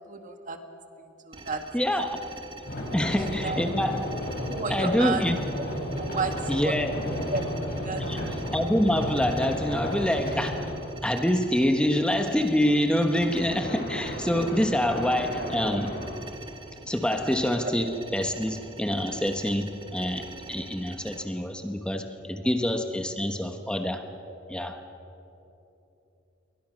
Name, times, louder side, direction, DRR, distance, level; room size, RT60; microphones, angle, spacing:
voice 1, 0.1-0.6 1.0-1.6 3.0-3.1 3.4-3.7 4.5-5.7 5.9-6.3 6.6-6.7 7.1-7.5 7.8-8.3 15.4-15.5 17.6-17.7, right 4 dB, 45° right, 6 dB, 1.8 m, -32 dB
sound 1, 1.3-21.2, right 3 dB, 25° right, 1.8 m, -45 dB
voice 2, 1.7-2.2 2.9-4.1 4.7-5.4 6.5-6.9 7.2-7.3 8.1-10.7 11.0-15.9 16.8-24.0 24.5-24.8, equal, 5° left, 5 dB, 1.1 m, -26 dB
sound 2, 2.7-10.9 13.1-16.1, equal, 55° left, 7.3 m, -33 dB
28.0 x 23.0 x 6.4 m, 3.0 s
head